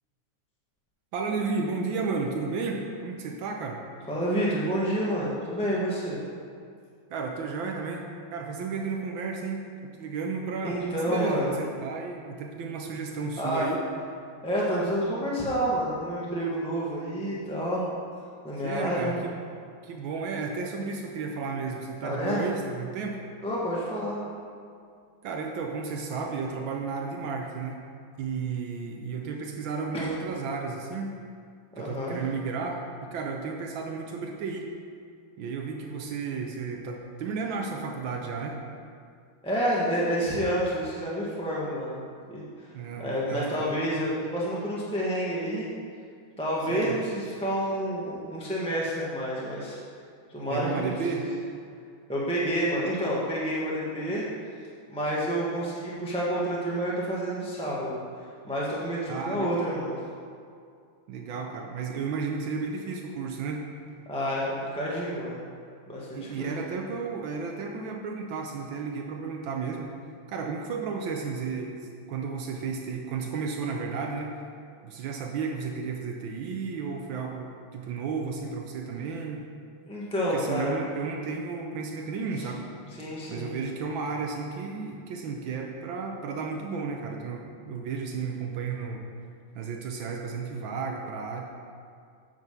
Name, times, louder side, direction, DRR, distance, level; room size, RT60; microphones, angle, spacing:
voice 1, 1.1-3.8 7.1-10.8 11.0-13.8 18.6-19.3 19.8-23.2 25.2-27.8 28.2-31.1 31.8-34.7 35.4-38.6 42.7-43.7 46.7-47.0 50.5-51.2 59.1-59.6 61.1-63.6 66.1-69.9 70.3-74.3 74.8-79.4 80.3-82.6 83.3-89.0 89.5-91.4, right 5 dB, 80° right, 1 dB, 1.5 m, -33 dB
voice 2, 4.1-6.2 10.6-11.6 13.4-13.7 14.4-17.9 18.4-19.1 22.0-22.4 23.4-24.2 29.9-30.1 31.8-32.2 39.4-42.0 42.3-42.7 43.0-45.7 46.4-49.8 50.3-51.3 52.1-54.2 54.9-58.0 58.4-60.0 64.1-65.4 65.9-66.6 79.9-80.8 82.4-82.5 82.9-83.5, equal, 5° left, -7 dB, 1.0 m, -29 dB
9.4 x 5.2 x 6.8 m, 2.3 s
omnidirectional pair, 2.1 m